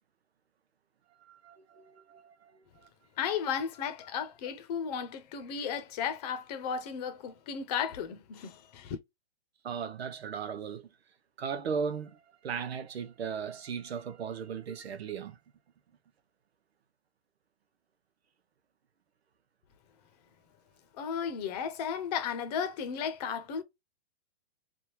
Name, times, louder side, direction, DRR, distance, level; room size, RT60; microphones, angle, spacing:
voice 1, 1.2-2.9 9.6-10.9 11.4-15.4, right 6 dB, 90° right, 0.9 m, -37 dB
voice 2, 3.2-9.0 21.0-23.6, left 7 dB, 40° left, 0.8 m, -34 dB
3.6 x 2.5 x 2.9 m
hypercardioid pair, 150°, 30 cm